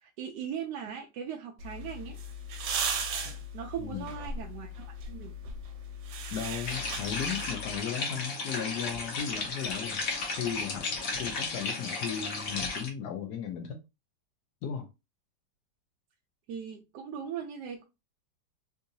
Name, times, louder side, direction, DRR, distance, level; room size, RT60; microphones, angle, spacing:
voice 1, 0.0-2.2 3.5-5.4 16.5-17.8, right 8 dB, 70° right, 1.0 m, -39 dB
sound 1, 1.6-7.8, right 2 dB, 90° right, 1.4 m, -37 dB
voice 2, 6.3-10.0 10.3-10.9 11.2-13.8 14.6-14.9, left 8 dB, 75° left, 0.9 m, -36 dB
sound 2, 6.6-12.9, left 3 dB, 55° left, 1.1 m, -34 dB
3.7 x 2.6 x 2.6 m
omnidirectional pair, 2.1 m